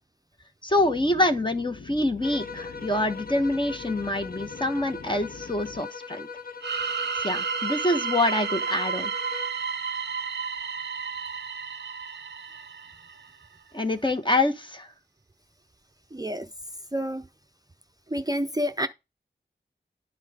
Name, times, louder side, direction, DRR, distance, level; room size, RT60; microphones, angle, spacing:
voice 1, 0.6-6.3 7.2-9.1 13.7-14.9, left 1 dB, 25° left, 1.1 m, -26 dB
sound 1, 0.8-5.8, left 5 dB, 75° left, 0.9 m, -45 dB
sound 2, 2.2-9.7, left 5 dB, 50° left, 0.8 m, -40 dB
sound 3, 6.6-13.3, right 6 dB, 65° right, 0.5 m, -32 dB
voice 2, 16.1-16.5 16.9-17.2 18.1-18.9, equal, 20° right, 0.6 m, -28 dB
10.0 x 4.0 x 4.8 m
wide cardioid pair, 75°, 19 cm